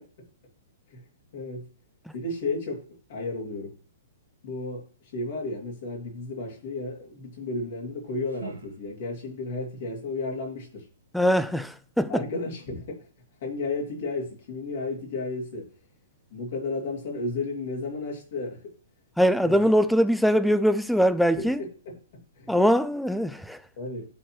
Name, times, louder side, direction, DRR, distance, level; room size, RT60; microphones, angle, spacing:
voice 1, 1.3-1.7 2.1-2.8 3.1-3.7 4.4-4.8 5.1-10.8 12.1-13.0 13.4-15.7 16.3-18.6 19.4-19.7 21.3-21.5 21.8-22.5 23.8-24.1, left 3 dB, 55° left, 2.7 m, -33 dB
sound 1, 7.8-9.4, right 6 dB, 80° right, 1.4 m, -46 dB
voice 2, 11.1-12.2 19.2-21.6 22.5-23.6, equal, ahead, 0.4 m, -22 dB
10.5 x 4.2 x 3.2 m
figure-of-eight pair, 115°, 0 cm